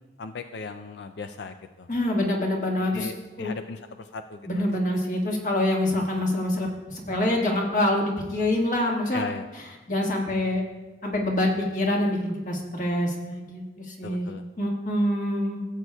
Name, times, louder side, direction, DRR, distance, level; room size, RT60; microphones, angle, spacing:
voice 1, 0.2-1.9 2.9-5.0 9.1-9.5 14.0-14.4, left 4 dB, 80° left, 8 dB, 0.4 m, -37 dB
voice 2, 1.9-3.1 3.4-3.5 4.4-9.2 9.9-10.6 11.0-15.7, left 1 dB, 45° left, 0 dB, 1.5 m, -26 dB
16.5 x 8.1 x 2.3 m, 1.2 s
head